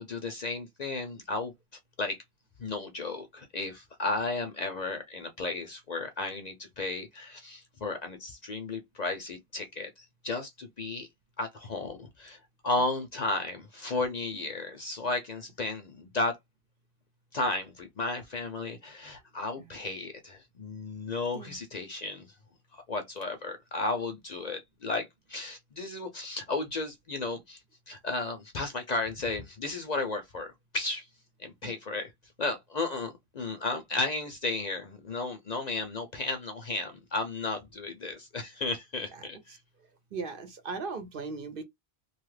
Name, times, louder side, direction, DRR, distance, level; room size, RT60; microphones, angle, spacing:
voice 1, 0.0-1.5 2.0-2.2 2.6-11.1 11.4-16.4 17.3-22.3 22.7-27.6 27.9-31.1 31.4-32.1 32.4-39.6, left 3 dB, 50° left, 0.6 m, -34 dB
voice 2, 40.1-41.6, right 4 dB, 60° right, 0.8 m, -37 dB
2.7 x 2.3 x 3.2 m
omnidirectional pair, 1.1 m